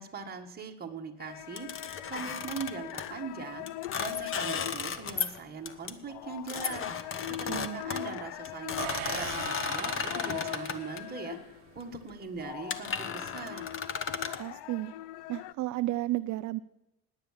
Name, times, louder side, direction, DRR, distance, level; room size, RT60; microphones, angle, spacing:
voice 1, 0.0-3.7 4.0-6.9 7.3-11.4 11.7-13.7, right 5 dB, 25° right, 2 dB, 1.7 m, -41 dB
sound 1, 1.2-11.8 12.1-15.5, left 16 dB, 85° left, 0.6 m, -41 dB
sound 2, 1.6-3.1 3.7-5.4 5.7-5.9 6.5-11.0 11.8-12.0 12.4-12.5 12.7-14.4, left 6 dB, 35° left, 1.0 m, -35 dB
voice 2, 7.5-7.8 14.4-14.9 15.3-16.6, right 17 dB, 50° right, 12 dB, 0.5 m, -32 dB
sound 3, 8.8-11.6, right 17 dB, 80° right, 0.8 m, -41 dB
17.0 x 9.9 x 7.4 m, 0.91 s
cardioid pair, 155°, 39 cm